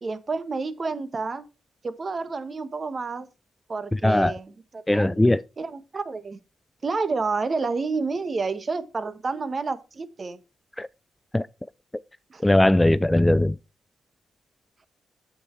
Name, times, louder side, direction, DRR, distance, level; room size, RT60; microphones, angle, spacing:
voice 1, 0.0-1.4 1.8-3.3 3.7-6.4 6.8-10.4 12.3-12.4, right 4 dB, 40° right, 1.2 m, -30 dB
voice 2, 3.9-4.4 4.9-5.4 10.8-10.9 11.3-11.5 12.4-13.6, left 1 dB, 10° left, 0.4 m, -19 dB
8.2 x 7.2 x 4.4 m
supercardioid pair, 55°, 0 cm